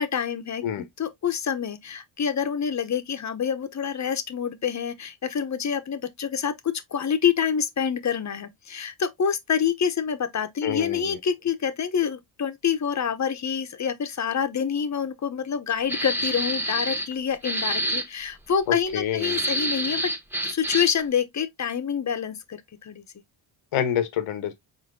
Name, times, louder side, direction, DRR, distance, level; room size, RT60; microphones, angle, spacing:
voice 1, 0.0-20.0 20.4-23.0, left 7 dB, 35° left, 0.9 m, -27 dB
voice 2, 10.6-11.2 18.7-19.4 23.7-24.5, left 9 dB, 90° left, 1.2 m, -27 dB
sound 1, 15.9-17.1 17.4-18.1 19.2-21.0, right 1 dB, 5° right, 1.1 m, -27 dB
4.4 x 4.3 x 2.6 m
cardioid pair, 90°, 48 cm